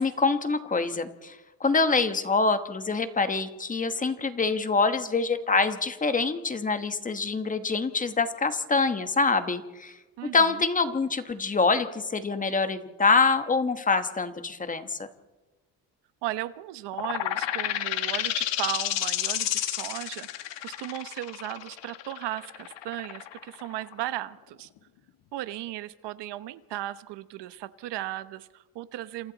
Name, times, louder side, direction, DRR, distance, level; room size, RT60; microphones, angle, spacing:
voice 1, 0.0-10.0 10.3-15.1, left 4 dB, 20° left, 9 dB, 1.2 m, -25 dB
voice 2, 10.2-10.5 16.2-20.3 20.6-24.7 25.3-29.3, right 14 dB, 70° right, 14 dB, 1.0 m, -36 dB
sound 1, 16.9-24.3, left 13 dB, 80° left, 1.8 m, -31 dB
28.5 x 27.5 x 4.0 m, 1.1 s
cardioid pair, 165°, 43 cm